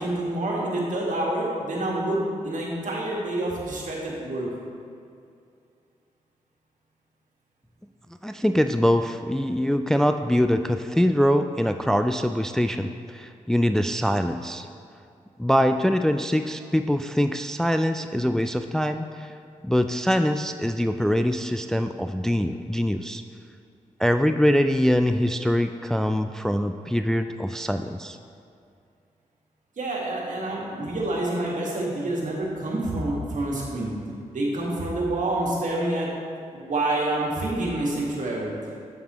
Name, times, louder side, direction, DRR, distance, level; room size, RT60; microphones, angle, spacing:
voice 1, 0.0-4.5 29.8-33.9 34.3-36.1 36.5-38.5, right 1 dB, 60° right, -3 dB, 1.8 m, -27 dB
voice 2, 8.2-14.7 15.4-19.3 19.6-23.2 24.0-28.2, equal, 5° left, 8 dB, 0.3 m, -23 dB
7.9 x 7.3 x 3.0 m, 2.4 s
supercardioid pair, 45°, 14 cm